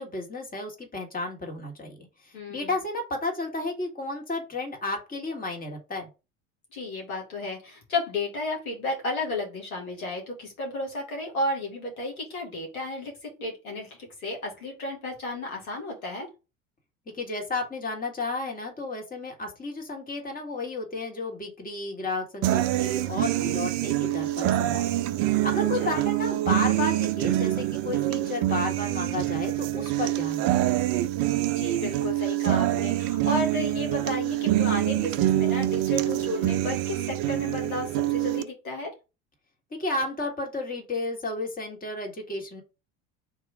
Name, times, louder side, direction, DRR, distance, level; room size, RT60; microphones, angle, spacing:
voice 1, 0.0-6.1 17.1-24.9 25.2-30.6 39.7-42.6, left 2 dB, 20° left, 2 dB, 1.8 m, -32 dB
voice 2, 2.3-2.7 6.7-13.9 14.2-16.3 25.8-26.0 31.5-38.9, left 2 dB, 85° left, 0 dB, 1.8 m, -33 dB
sound 1, 22.4-38.4, right 14 dB, 55° right, 0.6 m, -25 dB
3.7 x 3.0 x 4.7 m, 0.28 s
hypercardioid pair, 70°, 42 cm